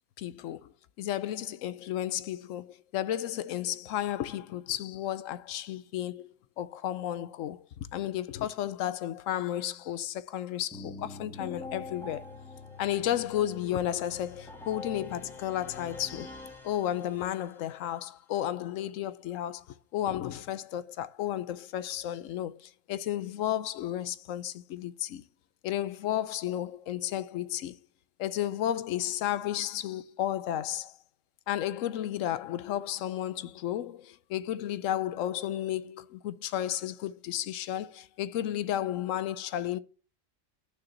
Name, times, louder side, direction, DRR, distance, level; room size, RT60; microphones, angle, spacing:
voice 1, 0.2-0.7 1.0-7.6 7.9-12.2 12.8-16.3 16.6-25.2 25.6-27.8 28.2-30.9 31.5-39.8, left 12 dB, 80° left, 1.0 m, -33 dB
sound 1, 10.7-17.5, left 3 dB, ahead, 1.7 m, -44 dB
6.6 x 5.8 x 7.3 m
omnidirectional pair, 1.3 m